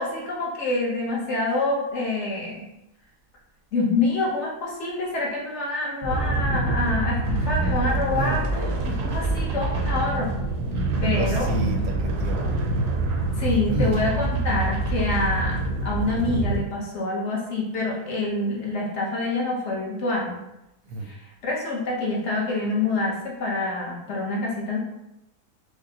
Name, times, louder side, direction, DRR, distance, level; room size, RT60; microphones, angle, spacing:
voice 1, 0.0-2.6 3.7-8.4 8.9-10.3 11.0-11.5 13.4-20.4 21.1-21.2 21.4-24.8, left 2 dB, 55° left, -3 dB, 1.0 m, -26 dB
sound 1, 6.0-16.6, right 2 dB, 90° right, 1.2 m, -25 dB
voice 2, 11.2-12.5 13.6-14.0 15.1-15.5 20.8-21.1, right 2 dB, 70° right, 1 dB, 0.9 m, -30 dB
5.0 x 2.1 x 2.8 m, 0.88 s
omnidirectional pair, 1.7 m